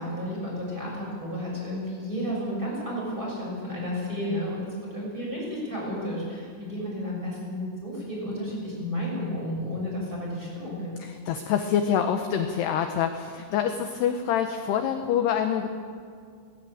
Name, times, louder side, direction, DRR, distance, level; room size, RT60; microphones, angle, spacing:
voice 1, 0.0-10.9, equal, 10° right, -4 dB, 6.5 m, -32 dB
voice 2, 11.0-15.7, left 8 dB, 80° left, 6 dB, 2.4 m, -26 dB
18.0 x 16.5 x 8.9 m, 2.2 s
omnidirectional pair, 5.9 m